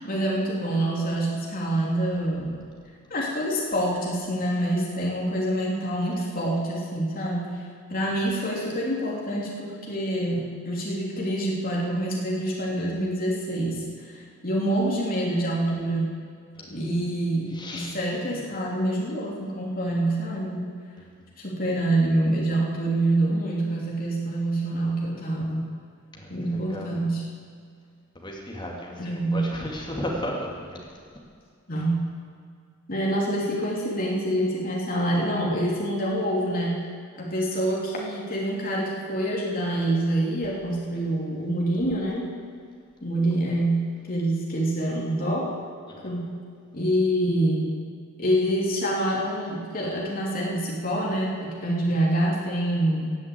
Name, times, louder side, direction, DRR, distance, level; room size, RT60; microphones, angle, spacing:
voice 1, 0.0-2.6 3.1-7.4 7.9-16.1 16.7-20.6 21.4-25.7 26.3-27.2 29.0-29.5 31.7-32.0 32.9-36.8 37.2-42.3 43.0-45.5 46.0-46.2 46.7-47.8 48.2-53.2, right 1 dB, 40° left, -3 dB, 3.1 m, -26 dB
voice 2, 17.5-17.9 18.3-18.5 26.1-26.9 28.2-30.8 45.9-46.1, left 1 dB, 20° left, -2 dB, 2.6 m, -35 dB
16.5 x 8.0 x 8.6 m, 2.1 s
head